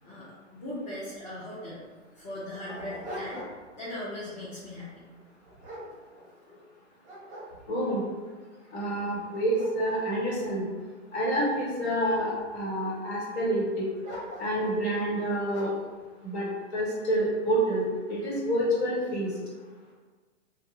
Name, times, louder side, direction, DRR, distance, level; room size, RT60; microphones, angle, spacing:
voice 1, 0.0-1.8 2.2-3.4 3.8-5.0, left 1 dB, 15° left, -11 dB, 0.5 m, -39 dB
Dog, 1.1-1.2 1.5-1.6 2.2-3.8 4.2-4.5 5.1-6.6 7.0-8.0 8.6-8.7 9.1-11.5 12.1-12.7 14.0-14.8 15.5-15.9, equal, 20° right, 0.8 m, -44 dB
voice 2, 7.7-8.0 8.7-10.6 11.1-13.9 14.4-15.7 16.2-17.8 18.1-19.3, right 1 dB, 60° left, -5 dB, 1.2 m, -28 dB
2.3 x 2.2 x 2.9 m, 1.4 s
hypercardioid pair, 115°, 37 cm